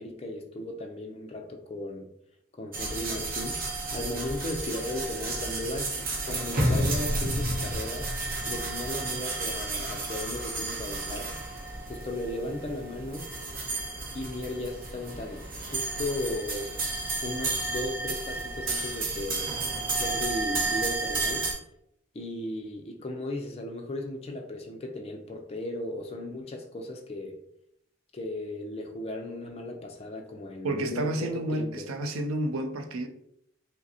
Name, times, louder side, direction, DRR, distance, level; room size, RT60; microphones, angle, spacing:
voice 1, 0.0-2.1 2.5-11.4 11.9-13.3 14.1-16.8 17.2-19.5 19.9-21.5 22.1-27.3 28.1-31.9, left 1 dB, 30° left, 0.4 m, -36 dB
sound 1, 2.7-21.5, right 2 dB, 45° right, 0.7 m, -32 dB
voice 2, 30.6-33.1, right 1 dB, 90° right, 0.5 m, -30 dB
4.9 x 2.0 x 2.7 m
head